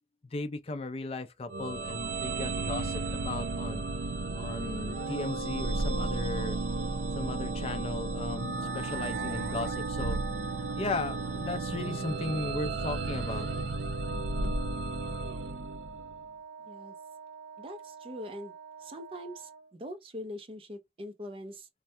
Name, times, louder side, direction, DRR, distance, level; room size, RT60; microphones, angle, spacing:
voice 1, 0.3-3.8 4.3-6.6 7.2-10.2 10.8-13.5, left 2 dB, 35° left, 0.4 m, -36 dB
sound 1, 1.5-16.2, right 3 dB, 90° right, 0.6 m, -33 dB
Wind instrument woodwind instrument, 14.0-19.7, right 5 dB, 60° right, 0.8 m, -47 dB
voice 2, 16.6-16.9 17.6-18.5 18.8-21.7, left 1 dB, 30° right, 0.5 m, -42 dB
3.2 x 2.2 x 2.7 m
head